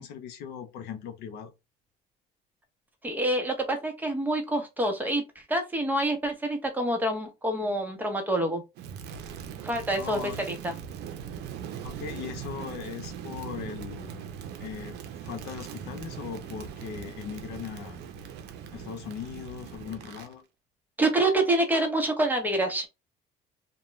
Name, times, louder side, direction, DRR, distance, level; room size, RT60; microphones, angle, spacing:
voice 1, 0.0-1.5 10.0-10.4 11.8-14.3 14.6-18.0 18.7-20.4, left 7 dB, 90° left, 0.7 m, -39 dB
voice 2, 3.0-5.2 5.5-8.6 9.6-10.2 10.5-10.7 21.0-22.9, right 1 dB, 10° right, 0.9 m, -26 dB
Crackle, 8.8-20.3, right 8 dB, 80° right, 0.6 m, -40 dB
2.3 x 2.2 x 3.0 m
cardioid pair, 110°, 17 cm